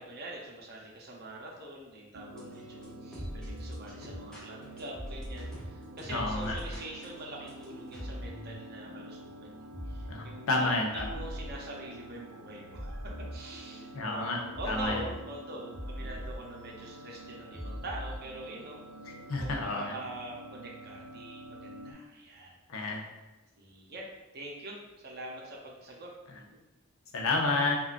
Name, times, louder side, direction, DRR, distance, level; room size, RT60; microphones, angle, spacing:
voice 1, 0.0-19.1 19.4-22.5 23.6-24.1 24.3-26.6, right 1 dB, 50° right, -2 dB, 0.7 m, -44 dB
sound 1, 2.1-21.9, right 1 dB, 90° right, 0.3 m, -49 dB
sound 2, 2.3-19.6, equal, 5° left, 0.7 m, -43 dB
voice 2, 6.1-6.5 10.1-11.1 13.9-14.4 14.7-15.0 19.3-19.9 22.7-23.0 27.1-27.8, left 2 dB, 85° left, 1 dB, 0.6 m, -30 dB
3.6 x 2.3 x 2.5 m, 1.0 s
head